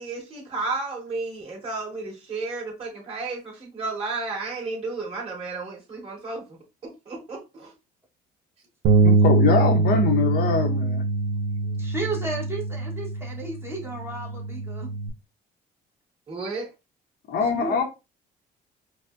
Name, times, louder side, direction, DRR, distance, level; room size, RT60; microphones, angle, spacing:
voice 1, 0.0-6.6 6.8-7.7 16.3-16.7, right 3 dB, 35° right, 2.1 m, -32 dB
Bass guitar, 8.8-15.1, right 3 dB, 85° right, 0.5 m, -23 dB
voice 2, 9.0-11.0 17.3-17.8, left 5 dB, 65° left, 0.8 m, -23 dB
voice 3, 11.6-14.9 17.5-17.8, right 3 dB, 15° right, 1.2 m, -33 dB
4.8 x 2.1 x 2.5 m
cardioid pair, 110°, 17 cm